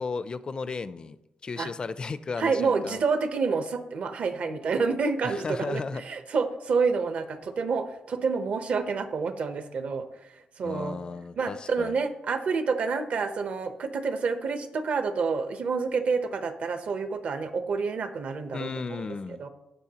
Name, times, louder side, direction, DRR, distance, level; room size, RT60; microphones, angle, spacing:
voice 1, 0.0-3.0 5.2-6.0 10.6-12.0 18.5-19.5, left 4 dB, 30° left, 14 dB, 0.4 m, -35 dB
voice 2, 2.4-10.1 10.6-11.0 11.4-19.1 19.4-19.5, right 4 dB, 50° right, 9 dB, 0.8 m, -28 dB
18.0 x 6.1 x 2.9 m, 0.95 s
wide cardioid pair, 150°, 3 cm